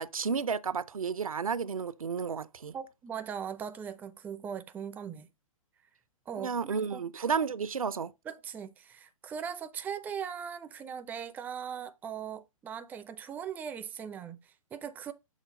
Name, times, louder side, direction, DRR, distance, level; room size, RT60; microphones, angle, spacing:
voice 1, 0.0-2.7 6.4-8.1, right 6 dB, 80° right, 0.5 m, -32 dB
voice 2, 2.7-5.3 6.3-7.2 8.3-15.1, right 7 dB, 10° right, 0.4 m, -40 dB
6.5 x 4.0 x 5.0 m
figure-of-eight pair, 115°, 18 cm